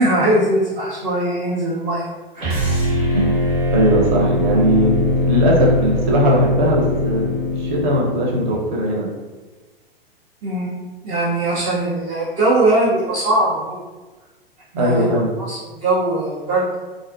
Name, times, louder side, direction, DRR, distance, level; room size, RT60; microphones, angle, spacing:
voice 1, 0.0-2.0 2.3-2.7 10.4-13.8 14.7-15.1 15.4-16.7, right 1 dB, 20° right, -6 dB, 0.4 m, -20 dB
sound 1, 2.4-8.6, left 1 dB, 80° right, 1.0 m, -21 dB
voice 2, 3.7-9.1 14.8-15.3, equal, 50° right, -2 dB, 0.8 m, -19 dB
2.5 x 2.3 x 2.2 m, 1.3 s
figure-of-eight pair, 100°, 30 cm